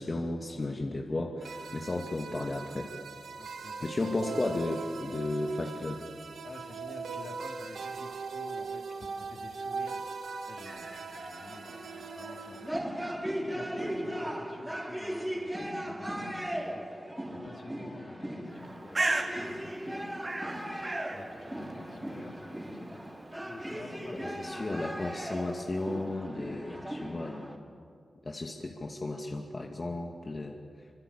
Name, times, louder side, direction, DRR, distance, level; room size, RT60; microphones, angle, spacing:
voice 1, 0.0-2.9 3.8-6.0 24.2-27.7 28.2-30.6, left 2 dB, 45° left, 1 dB, 2.4 m, -34 dB
sound 1, 1.4-12.7, right 4 dB, 85° right, 1.9 m, -40 dB
voice 2, 3.4-3.9 6.4-12.9 13.1-16.3 16.6-16.8 17.3-20.1 21.1-24.5, left 3 dB, 65° left, 2 dB, 3.6 m, -50 dB
sound 2, 10.7-27.6, equal, 15° right, 5.1 m, -38 dB
Bird, 18.5-26.1, right 2 dB, 45° right, 4.4 m, -38 dB
26.0 x 25.0 x 9.0 m, 2.3 s
cardioid pair, 45°, 0 cm